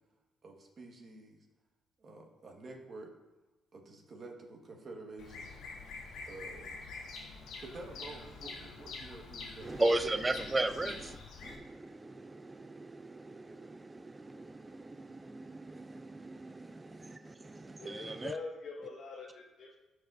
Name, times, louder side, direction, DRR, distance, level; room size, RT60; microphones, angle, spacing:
voice 1, 0.4-1.4 2.0-3.1 3.7-5.5 6.2-6.7 7.6-9.7, right 2 dB, 45° right, 1.5 m, -49 dB
Bird vocalization bird call bird song, 5.2-11.6, left 3 dB, 85° left, 1.2 m, -46 dB
voice 2, 9.6-11.2 11.4-18.3, right 2 dB, 20° right, 0.3 m, -36 dB
voice 3, 17.8-19.8, left 4 dB, 55° left, 0.9 m, -43 dB
13.5 x 4.9 x 2.6 m
cardioid pair, 90°, 0 cm